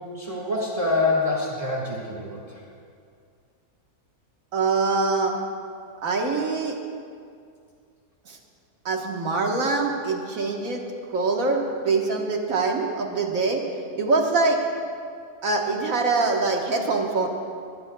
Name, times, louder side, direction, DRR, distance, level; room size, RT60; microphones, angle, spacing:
voice 1, 0.1-2.6, left 2 dB, 25° right, -3 dB, 1.8 m, -26 dB
voice 2, 4.5-5.4 6.0-6.8 8.3-8.4 8.9-10.8 11.1-13.6 14.0-14.6 15.4-17.3, right 3 dB, 60° right, 0 dB, 1.8 m, -24 dB
20.0 x 16.0 x 2.3 m, 2.3 s
omnidirectional pair, 1.6 m